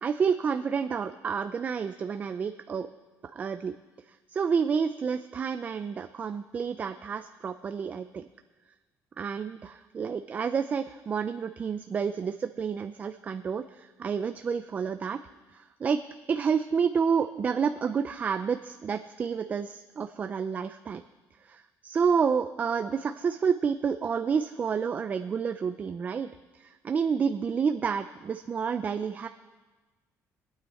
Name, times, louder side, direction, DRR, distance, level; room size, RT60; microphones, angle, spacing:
voice 1, 0.0-2.9 3.3-3.7 4.3-8.3 9.2-15.2 15.5-16.0 16.3-21.0 21.4-29.3, right 6 dB, 25° right, 9 dB, 0.4 m, -29 dB
26.0 x 8.9 x 4.2 m, 1.3 s
cardioid pair, 165°, 6 cm